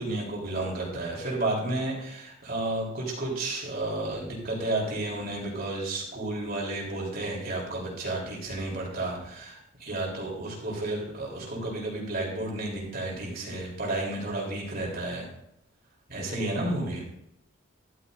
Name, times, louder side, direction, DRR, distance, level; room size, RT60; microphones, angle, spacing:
voice 1, 0.0-15.3 16.1-17.0, right 2 dB, 50° right, -3 dB, 3.8 m, -32 dB
13.0 x 12.5 x 2.7 m, 0.81 s
head